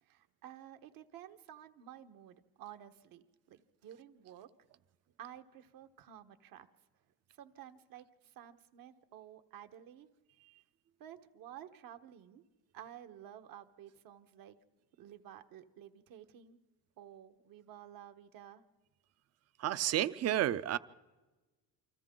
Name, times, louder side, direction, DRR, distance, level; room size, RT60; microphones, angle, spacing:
voice 1, 0.0-3.2 3.5-4.5 5.2-6.7 7.4-10.1 11.0-12.4 12.7-14.6 15.0-16.6 17.0-18.6, right 10 dB, 70° right, 7 dB, 1.3 m, -52 dB
voice 2, 19.6-20.8, right 12 dB, 45° right, 16 dB, 0.6 m, -31 dB
28.5 x 25.0 x 3.8 m, 1.2 s
cardioid pair, 170°, 36 cm